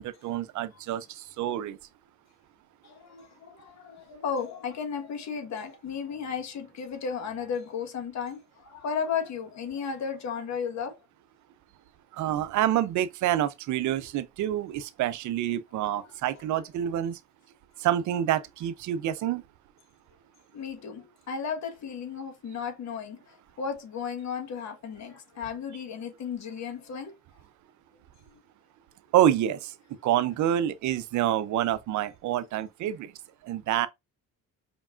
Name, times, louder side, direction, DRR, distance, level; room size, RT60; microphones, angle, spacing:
voice 1, 0.0-1.8 12.1-17.2 17.8-19.4 29.1-29.7 30.0-33.1 33.4-33.9, right 11 dB, 75° right, 0.5 m, -27 dB
voice 2, 2.8-11.0 15.8-15.9 20.5-27.1, left 6 dB, 65° left, 1.3 m, -34 dB
5.1 x 3.5 x 2.4 m
cardioid pair, 90°, 30 cm